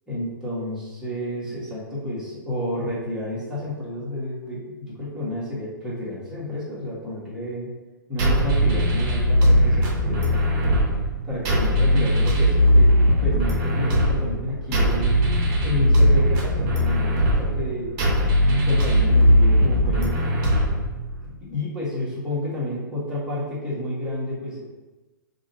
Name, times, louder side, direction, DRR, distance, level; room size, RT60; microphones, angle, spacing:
voice 1, 0.1-7.7 8.1-10.8 11.2-12.9 13.2-15.2 15.6-17.9 18.6-20.3 21.2-24.6, left 1 dB, 5° right, -9 dB, 1.3 m, -30 dB
sound 1, 8.2-21.2, equal, 35° right, 0.8 m, -19 dB
2.7 x 2.5 x 4.0 m, 1.1 s
figure-of-eight pair, 115°, 11 cm